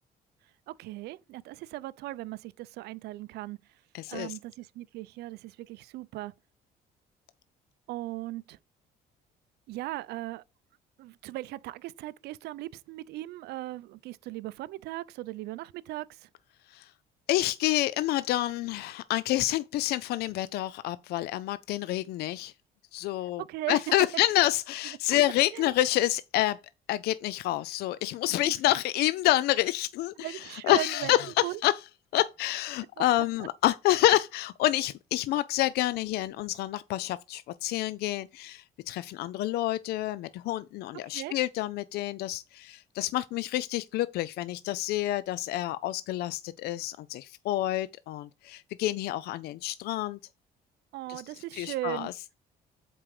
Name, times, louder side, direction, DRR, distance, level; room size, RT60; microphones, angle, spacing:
voice 1, 0.7-3.6 4.1-6.3 7.9-8.6 9.7-10.4 11.0-16.3 23.4-23.8 25.5-25.7 28.4-28.8 30.2-31.1 31.4-31.6 41.1-41.3 50.9-52.1, right 17 dB, 75° right, 0.5 m, -38 dB
voice 2, 3.9-4.4 16.7-16.9 17.3-22.5 22.9-23.4 23.7-26.6 26.9-31.8 32.1-50.2 51.1-52.1, left 15 dB, 70° left, 0.4 m, -28 dB
7.6 x 4.6 x 4.7 m
cardioid pair, 110°, 17 cm